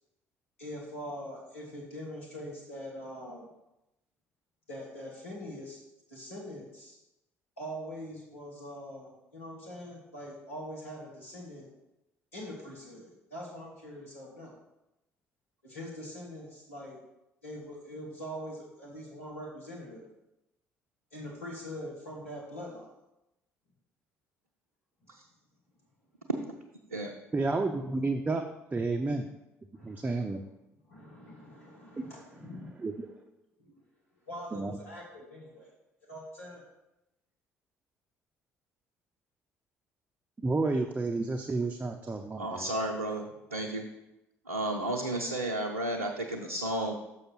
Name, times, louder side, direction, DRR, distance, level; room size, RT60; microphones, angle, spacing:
voice 1, 0.6-3.5 4.7-5.8 6.1-7.0 7.6-11.7 12.3-14.5 15.6-17.0 17.4-20.0 21.1-22.9 29.7-30.4 30.9-32.7 33.6-33.7 34.1-35.7 36.1-36.6, equal, 85° left, -4 dB, 1.8 m, -43 dB
voice 2, 27.3-28.4 28.7-29.3 29.8-30.4 32.0-32.1 32.8-32.9 34.5-34.8 40.4-42.7, right 3 dB, 20° right, 3 dB, 0.6 m, -30 dB
voice 3, 42.4-43.9 44.5-46.9, right 1 dB, 90° right, -1 dB, 0.6 m, -32 dB
6.6 x 5.6 x 4.6 m, 0.91 s
figure-of-eight pair, 50°, 7 cm